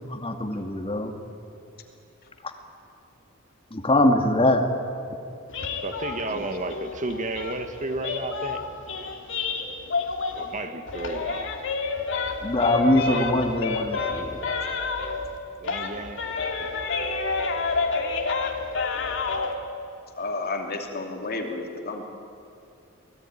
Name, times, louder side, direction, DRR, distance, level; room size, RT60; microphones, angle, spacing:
voice 1, 0.1-1.1 2.4-2.5 3.7-4.7 12.4-14.3, left 1 dB, 25° left, 5 dB, 2.1 m, -22 dB
sound 1, 5.5-10.6 10.9-15.4 15.6-19.5, left 4 dB, 65° left, 2.6 m, -29 dB
voice 2, 5.8-8.6 10.3-11.5 15.6-16.2 16.6-16.8, right 2 dB, 35° right, 7 dB, 1.5 m, -32 dB
voice 3, 20.1-22.0, left 3 dB, 50° left, 3 dB, 2.9 m, -32 dB
25.0 x 18.5 x 9.9 m, 2.6 s
head